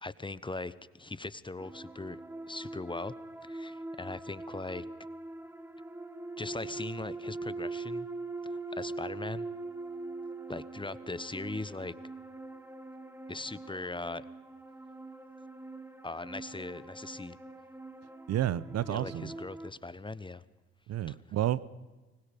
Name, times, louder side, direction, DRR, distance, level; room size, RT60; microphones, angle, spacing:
voice 1, 0.0-2.2 2.5-3.1 3.4-4.8 6.4-8.1 8.4-9.5 10.5-11.9 13.3-14.2 16.0-17.4 18.9-20.4 21.1-21.2, left 3 dB, 15° left, 17 dB, 0.9 m, -40 dB
sound 1, 1.6-19.7, right 2 dB, 5° right, 1.8 m, -42 dB
voice 2, 18.3-19.3 20.9-21.7, right 12 dB, 55° right, 18 dB, 0.8 m, -31 dB
25.0 x 21.0 x 5.2 m, 1.2 s
hypercardioid pair, 45°, 31 cm